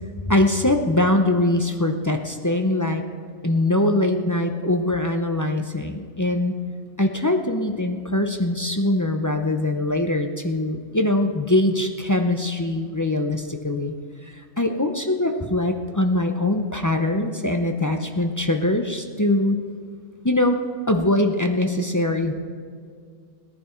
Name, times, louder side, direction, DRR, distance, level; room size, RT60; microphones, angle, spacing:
voice 1, 0.3-3.0 3.4-6.5 7.0-13.9 14.3-19.6 20.2-20.6 20.9-22.3, left 1 dB, 25° left, 4 dB, 0.4 m, -22 dB
18.5 x 10.5 x 4.4 m, 2.1 s
omnidirectional pair, 1.4 m